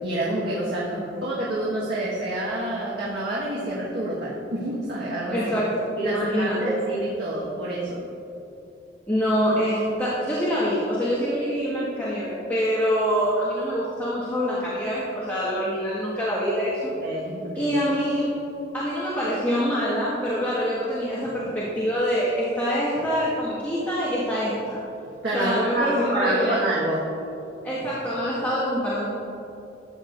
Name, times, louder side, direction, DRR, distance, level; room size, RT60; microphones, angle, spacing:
voice 1, 0.0-5.5 6.0-8.0 17.0-17.7 25.2-27.1, right 1 dB, 60° right, -8 dB, 1.6 m, -28 dB
voice 2, 0.9-1.2 5.3-6.7 9.1-16.9 17.6-18.3 18.7-24.8 25.3-26.6 27.6-29.1, equal, 10° left, -12 dB, 1.8 m, -25 dB
14.0 x 8.9 x 2.6 m, 2.8 s
head